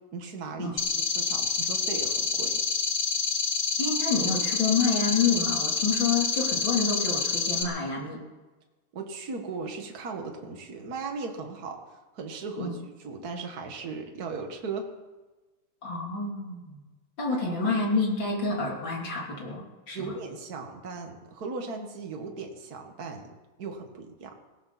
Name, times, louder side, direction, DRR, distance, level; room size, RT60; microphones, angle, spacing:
voice 1, 0.1-0.8 1.1-2.6 8.9-11.8 12.1-14.9 17.3-17.8 19.9-23.3 23.6-24.3, right 4 dB, 35° right, 3 dB, 1.8 m, -37 dB
sound 1, 0.8-7.6, left 5 dB, 90° left, 0.6 m, -27 dB
voice 2, 3.8-8.2 12.6-12.7 15.8-16.8 17.2-20.1, left 4 dB, 35° left, -2 dB, 3.9 m, -28 dB
19.0 x 17.0 x 4.3 m, 1.2 s
omnidirectional pair, 3.7 m